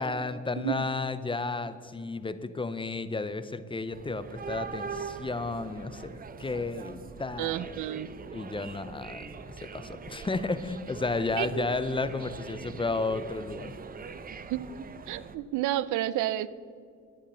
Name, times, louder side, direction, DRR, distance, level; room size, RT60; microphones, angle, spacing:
voice 1, 0.0-7.8 8.3-13.7, left 3 dB, 15° left, 12 dB, 0.5 m, -33 dB
sound 1, 3.9-15.4, right 5 dB, 30° right, 0.6 m, -42 dB
voice 2, 7.4-8.1 11.4-11.7 14.5-14.6 15.1-16.5, right 14 dB, 80° right, 17 dB, 0.5 m, -30 dB
11.5 x 9.7 x 4.3 m, 2.3 s
cardioid pair, 90°, 30 cm